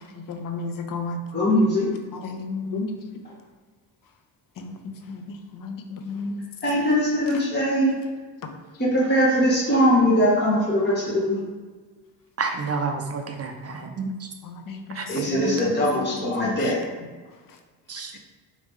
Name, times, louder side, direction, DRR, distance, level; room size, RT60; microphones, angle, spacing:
voice 1, 0.3-1.2 2.1-2.9 4.6-4.7 5.1-6.4 14.4-15.0 15.4-15.6 16.4-16.6, left 3 dB, 50° left, 0.7 m, -32 dB
voice 2, 1.3-1.9 6.6-7.9 8.8-11.4 15.1-16.8, equal, 25° left, 1.2 m, -21 dB
voice 3, 12.4-14.3 14.9-15.2 17.9-18.2, right 4 dB, 35° right, 0.5 m, -30 dB
4.2 x 3.0 x 3.5 m
supercardioid pair, 75°, 44 cm